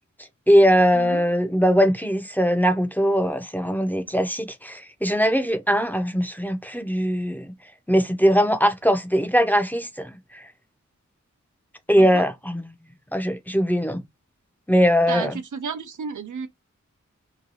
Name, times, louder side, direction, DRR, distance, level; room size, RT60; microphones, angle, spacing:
voice 1, 0.5-7.5 7.9-10.4 11.9-12.6 13.1-14.0 14.7-15.3, equal, 5° left, 0.5 m, -20 dB
voice 2, 12.0-12.3 15.1-16.5, right 6 dB, 85° right, 0.6 m, -32 dB
2.8 x 2.3 x 2.8 m
wide cardioid pair, 60°, 30 cm